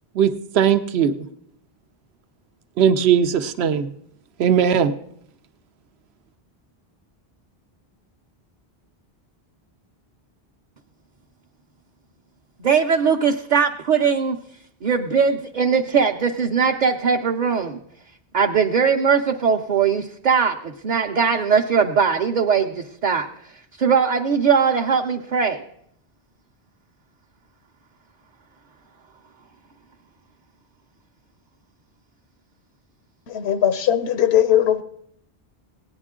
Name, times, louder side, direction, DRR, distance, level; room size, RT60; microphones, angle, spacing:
voice 1, 0.1-1.1 2.8-3.9 4.4-4.9, right 8 dB, 90° right, 11 dB, 0.9 m, -18 dB
voice 2, 12.6-14.4 14.8-17.8 18.3-23.3 23.8-25.6, right 6 dB, 50° right, 2 dB, 0.7 m, -20 dB
voice 3, 33.3-34.8, left 10 dB, 90° left, 11 dB, 0.9 m, -19 dB
17.0 x 9.8 x 3.7 m, 0.71 s
omnidirectional pair, 1.0 m